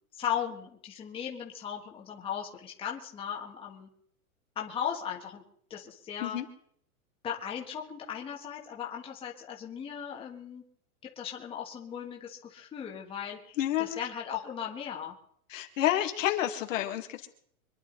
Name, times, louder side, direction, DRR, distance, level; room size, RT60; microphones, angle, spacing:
voice 1, 0.2-3.9 4.5-5.4 5.7-6.4 7.2-10.6 11.2-15.2, left 8 dB, 10° left, -1 dB, 1.6 m, -37 dB
voice 2, 13.6-14.0 15.5-17.3, left 12 dB, 60° left, 4 dB, 2.0 m, -29 dB
25.5 x 10.5 x 4.0 m, 0.63 s
supercardioid pair, 170°, 44 cm